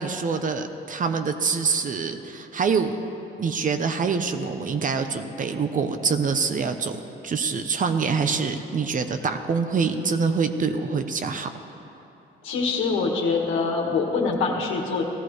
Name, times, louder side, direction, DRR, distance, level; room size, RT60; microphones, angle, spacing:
voice 1, 0.0-2.9 3.4-7.0 7.2-11.5, right 5 dB, 40° right, 8 dB, 0.8 m, -25 dB
voice 2, 12.4-15.0, left 4 dB, 90° left, -1 dB, 1.8 m, -24 dB
17.5 x 13.5 x 3.3 m, 3.0 s
cardioid pair, 90°, 20 cm